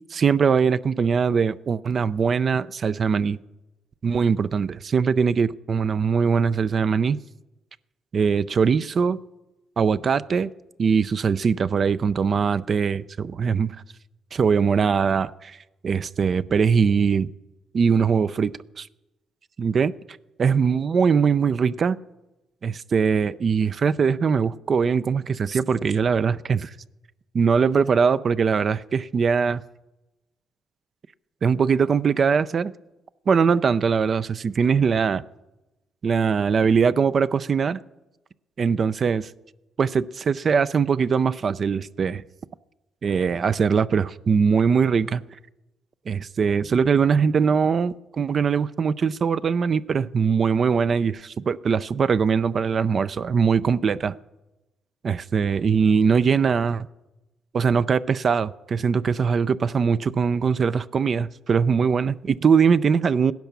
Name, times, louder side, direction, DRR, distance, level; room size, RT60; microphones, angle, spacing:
voice 1, 0.1-3.4 4.0-7.2 8.1-9.2 9.8-10.5 10.8-13.7 14.3-15.6 15.8-17.3 17.7-18.5 18.8-18.9 19.6-19.9 20.4-22.0 22.6-26.7 27.3-29.6 31.4-32.7 33.3-35.2 36.0-37.8 38.6-39.3 39.8-42.2 43.0-45.2 46.1-54.1 55.0-56.9 57.5-63.3, right 6 dB, 45° right, 0.5 m, -21 dB
16.0 x 10.5 x 6.9 m
cardioid pair, 90°, 0 cm